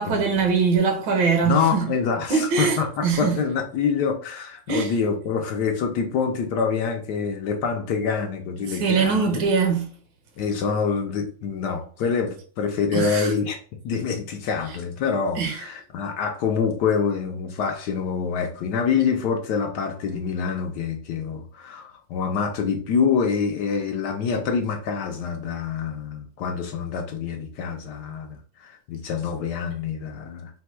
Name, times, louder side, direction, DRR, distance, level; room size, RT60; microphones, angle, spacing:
voice 1, 0.0-1.9 2.3-3.4 4.7-4.9 8.7-9.9 12.9-13.3 15.4-15.6, right 5 dB, 75° right, 1.5 m, -22 dB
voice 2, 1.4-9.4 10.4-13.6 13.8-30.5, left 6 dB, 70° left, 1.1 m, -26 dB
4.1 x 2.2 x 4.4 m
omnidirectional pair, 2.1 m